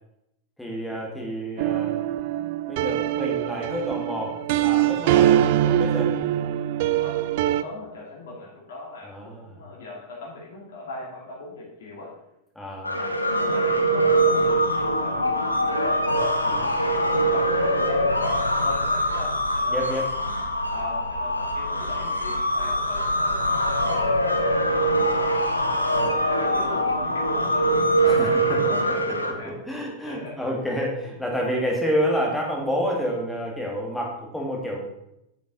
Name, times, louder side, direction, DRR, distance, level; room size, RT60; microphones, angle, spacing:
voice 1, 0.6-2.0 2.7-6.2 9.0-9.6 12.6-13.0 16.5-16.7 19.7-20.2 28.1-28.8 29.1-34.8, equal, 5° left, -1 dB, 2.3 m, -29 dB
sound 1, 1.6-7.6, right 12 dB, 50° right, 0.4 m, -23 dB
voice 2, 6.9-12.1 12.9-15.3 15.7-16.1 16.4-20.1 20.7-25.6 25.9-27.6 27.9-29.5 30.0-30.5, left 2 dB, 60° left, -4 dB, 2.6 m, -39 dB
sound 2, 12.8-29.3, right 1 dB, 85° left, 0.9 m, -23 dB
8.5 x 7.1 x 4.1 m, 0.85 s
figure-of-eight pair, 90°, 0 cm